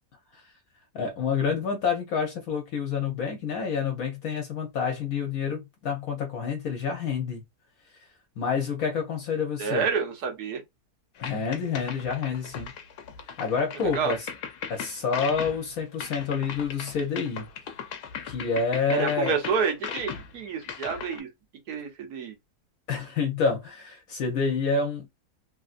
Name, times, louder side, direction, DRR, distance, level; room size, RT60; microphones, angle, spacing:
voice 1, 0.9-7.4 8.4-9.9 11.2-12.7 13.4-14.2 14.7-17.5 18.2-19.4 22.9-25.1, left 5 dB, 70° left, 1.2 m, -28 dB
voice 2, 9.6-10.6 13.8-14.1 18.9-21.3 21.7-22.3, right 6 dB, 85° right, 1.4 m, -29 dB
sound 1, 11.2-21.2, left 7 dB, 90° left, 1.2 m, -38 dB
3.2 x 2.5 x 2.4 m
omnidirectional pair, 1.6 m